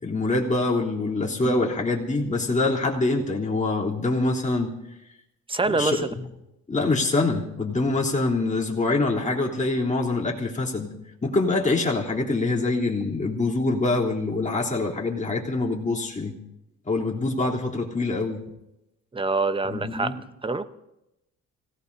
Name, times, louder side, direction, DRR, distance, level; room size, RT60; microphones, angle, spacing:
voice 1, 0.0-4.7 5.7-6.1 6.7-10.9 11.2-16.3 16.8-18.4 19.6-20.2, left 2 dB, 25° left, -3 dB, 3.4 m, -25 dB
voice 2, 5.5-6.0 19.1-20.2 20.4-20.7, right 3 dB, 15° right, 12 dB, 0.9 m, -25 dB
26.0 x 17.5 x 2.8 m, 0.88 s
cardioid pair, 90°, 30 cm